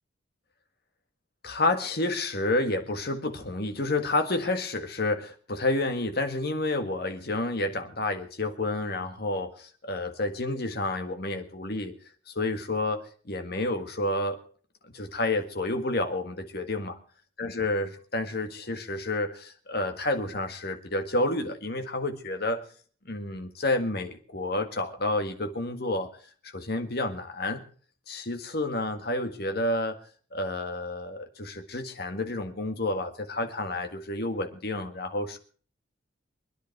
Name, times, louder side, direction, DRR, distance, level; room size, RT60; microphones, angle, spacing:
voice 1, 1.4-12.0 12.3-14.4 14.9-16.9 17.4-22.6 23.1-26.1 26.5-27.6 28.1-30.0 30.3-35.4, left 2 dB, 50° left, 5 dB, 1.8 m, -30 dB
24.5 x 10.0 x 4.7 m, 0.43 s
head